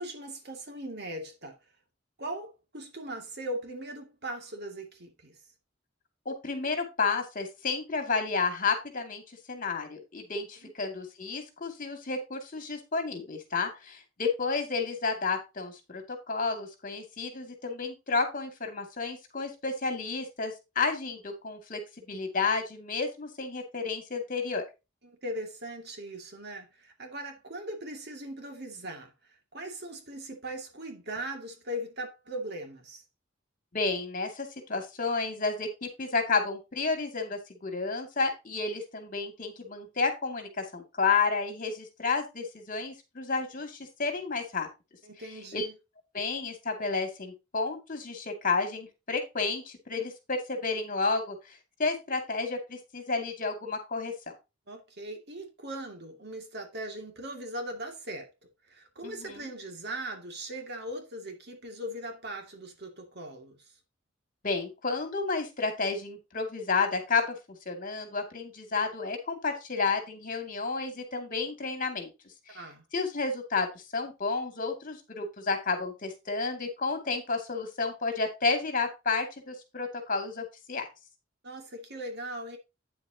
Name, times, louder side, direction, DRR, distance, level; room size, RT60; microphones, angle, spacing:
voice 1, 0.0-1.6 2.2-5.4 10.6-10.7 25.0-33.0 45.0-45.7 54.7-58.3 58.7-63.6 72.5-72.8 81.4-82.6, right 1 dB, 55° right, 2.4 m, -39 dB
voice 2, 6.3-9.2 9.5-21.8 22.1-24.6 33.7-44.7 45.5-45.7 46.1-54.3 59.0-59.4 64.4-67.4 67.7-72.1 72.5-72.6 72.9-80.9, left 4 dB, 45° left, 2.4 m, -31 dB
9.4 x 7.8 x 2.9 m
head